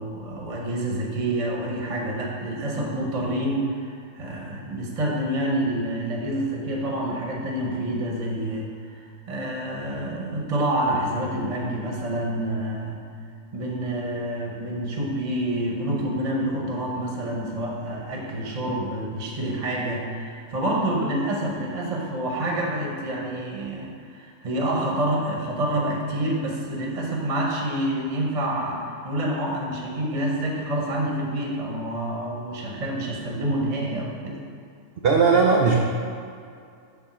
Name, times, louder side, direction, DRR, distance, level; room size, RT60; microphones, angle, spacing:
voice 1, 0.0-13.0 13.5-34.4, right 1 dB, 30° right, -2 dB, 0.9 m, -27 dB
voice 2, 35.0-35.8, right 5 dB, 85° right, 0 dB, 0.5 m, -17 dB
7.1 x 3.7 x 6.0 m, 2.4 s
omnidirectional pair, 1.6 m